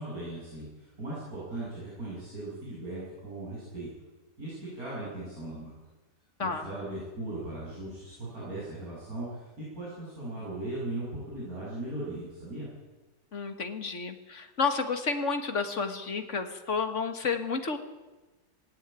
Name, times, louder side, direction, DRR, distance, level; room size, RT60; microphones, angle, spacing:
voice 1, 0.0-3.9 4.4-5.7 6.4-12.7, right 1 dB, 65° right, -9 dB, 8.7 m, -38 dB
voice 2, 13.3-17.8, left 5 dB, 50° left, 7 dB, 2.0 m, -31 dB
18.5 x 17.0 x 9.0 m, 1.2 s
omnidirectional pair, 1.7 m